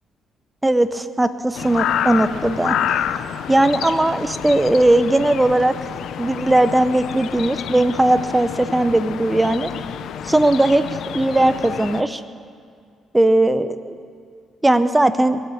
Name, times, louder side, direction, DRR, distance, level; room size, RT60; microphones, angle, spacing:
voice 1, 0.6-2.8 3.5-5.7 6.2-9.7 10.2-10.8 11.1-12.2 13.1-13.9 14.6-15.4, right 1 dB, 15° right, 12 dB, 0.7 m, -18 dB
sound 1, 1.5-12.0, left 9 dB, 75° left, 0.5 m, -28 dB
21.0 x 7.7 x 7.3 m, 2.2 s
cardioid pair, 90°, 0 cm